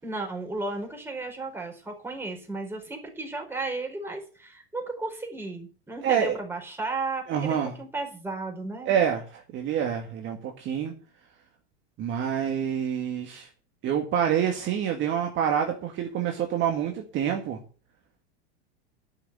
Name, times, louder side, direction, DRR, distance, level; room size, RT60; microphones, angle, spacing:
voice 1, 0.0-9.0, right 3 dB, 5° right, 4.6 m, -34 dB
voice 2, 6.0-6.4 7.3-7.8 8.9-10.9 12.0-13.5 13.8-17.6, right 8 dB, 40° right, 1.9 m, -27 dB
11.5 x 6.7 x 8.5 m
supercardioid pair, 135°, 31 cm